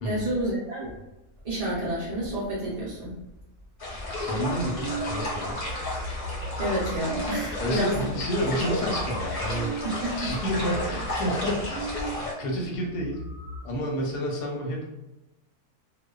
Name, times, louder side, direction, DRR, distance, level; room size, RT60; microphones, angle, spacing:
voice 1, 0.0-0.9 1.4-3.1 6.6-8.1 8.5-8.8 9.8-10.3, right 1 dB, 65° right, -8 dB, 0.3 m, -29 dB
sound 1, 3.8-12.3, left 1 dB, 45° left, 0.6 m, -32 dB
voice 2, 4.2-5.6 7.6-9.7 10.0-13.2 13.6-14.8, equal, 85° left, -1 dB, 1.2 m, -30 dB
sound 2, 4.5-12.2 12.5-12.6 12.8-13.6, right 2 dB, 65° left, 1.1 m, -38 dB
2.5 x 2.2 x 2.3 m, 1.0 s
omnidirectional pair, 1.7 m